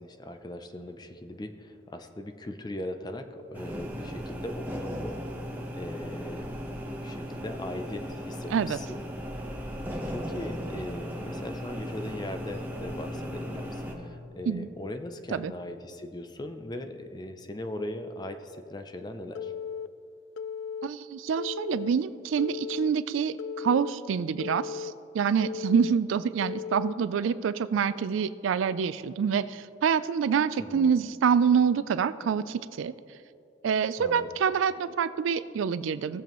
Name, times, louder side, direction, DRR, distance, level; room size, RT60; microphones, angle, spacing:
voice 1, 0.0-5.2 5.7-6.6 6.9-9.0 10.1-19.5 30.6-30.9 34.0-34.3, left 1 dB, 20° left, 7 dB, 0.5 m, -39 dB
sound 1, 3.5-13.9, equal, 10° right, 1.0 m, -37 dB
Telephone, 19.3-19.9 20.4-20.9 21.4-21.9 22.4-22.9 23.4-23.9 24.4-24.9 25.4-25.9 26.4-26.9, left 7 dB, 85° left, 0.4 m, -36 dB
voice 2, 20.8-32.9 33.6-36.2, right 6 dB, 85° right, 15 dB, 0.3 m, -26 dB
17.5 x 6.9 x 3.1 m, 2.6 s
head